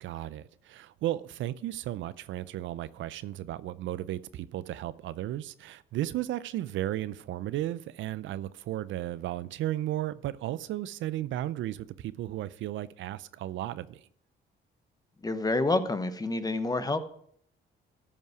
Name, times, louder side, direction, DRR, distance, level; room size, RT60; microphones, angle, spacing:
voice 1, 0.0-14.0, right 13 dB, 75° right, 0.5 m, -34 dB
voice 2, 15.2-17.1, left 2 dB, 20° left, 0.9 m, -28 dB
14.0 x 5.4 x 4.8 m
cardioid pair, 90°, 20 cm